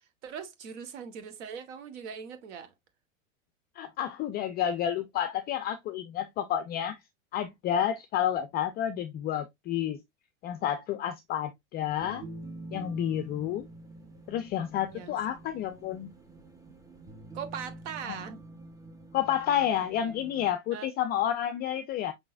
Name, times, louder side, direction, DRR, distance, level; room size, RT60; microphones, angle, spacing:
voice 1, 0.2-2.7 14.9-15.2 17.3-18.4 20.7-20.9, right 7 dB, 60° right, 1.4 m, -40 dB
voice 2, 3.8-7.0 7.3-10.0 10.4-12.3 12.7-13.7 14.3-16.1 18.0-18.2 19.1-22.1, left 10 dB, 25° left, 0.4 m, -30 dB
sound 1, 11.9-20.5, right 2 dB, 10° right, 0.8 m, -47 dB
5.5 x 3.8 x 2.4 m
hypercardioid pair, 110°, 39 cm